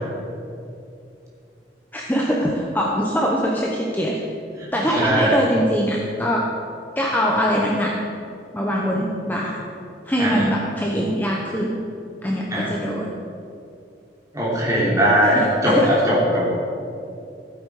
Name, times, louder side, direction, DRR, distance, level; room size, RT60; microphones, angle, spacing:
voice 1, 1.9-4.2 4.7-6.5 7.0-8.0 8.5-9.7 10.1-11.8 12.2-13.1 15.2-16.0, equal, 10° left, -2 dB, 0.9 m, -23 dB
voice 2, 4.9-5.3 10.2-10.5 12.5-12.7 14.3-16.5, equal, 20° right, -6 dB, 3.1 m, -19 dB
15.0 x 8.4 x 4.9 m, 2.6 s
head